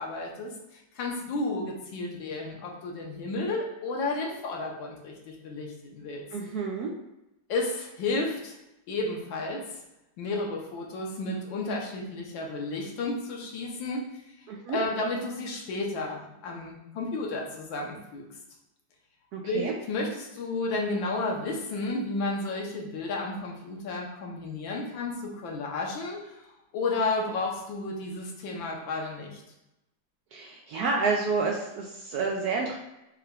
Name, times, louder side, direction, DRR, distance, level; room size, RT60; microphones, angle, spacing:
voice 1, 0.0-6.2 7.5-8.6 8.9-9.8 10.2-14.1 14.4-18.3 19.4-26.5 26.7-29.4, left 2 dB, 80° left, -1 dB, 1.6 m, -32 dB
voice 2, 6.3-6.9 14.5-14.8 19.3-19.7 30.3-32.8, right 4 dB, 70° right, 0 dB, 0.9 m, -29 dB
6.6 x 3.5 x 2.3 m, 0.90 s
omnidirectional pair, 2.1 m